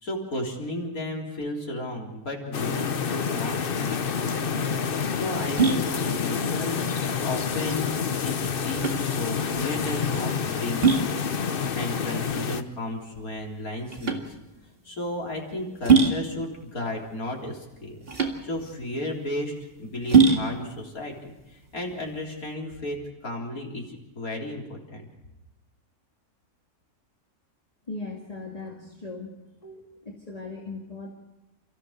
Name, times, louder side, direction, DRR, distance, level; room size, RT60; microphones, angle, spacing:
voice 1, 0.0-4.5 5.1-8.0 8.2-8.3 8.6-11.3 11.7-14.4 14.8-18.0 18.4-23.0 23.2-25.1, left 1 dB, 65° left, -1 dB, 4.2 m, -34 dB
sound 1, 2.5-12.6, left 6 dB, 45° left, 0.9 m, -28 dB
sound 2, 4.0-22.5, right 5 dB, 40° right, 2.3 m, -26 dB
voice 2, 27.9-29.3 29.6-31.1, left 3 dB, 25° left, 0 dB, 2.2 m, -38 dB
30.0 x 15.0 x 6.6 m, 0.99 s
omnidirectional pair, 1.6 m